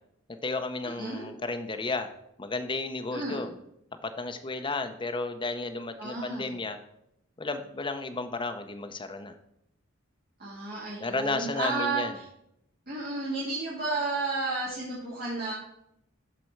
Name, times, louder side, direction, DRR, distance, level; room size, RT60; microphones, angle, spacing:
voice 1, 0.3-2.1 2.4-3.5 4.0-6.8 7.4-9.3 11.0-12.1, left 3 dB, 25° left, 6 dB, 0.6 m, -33 dB
voice 2, 0.8-1.2 3.1-3.5 6.0-6.5 10.4-12.2 12.9-15.5, right 3 dB, 45° right, -7 dB, 2.0 m, -32 dB
12.5 x 4.3 x 4.5 m, 0.79 s
head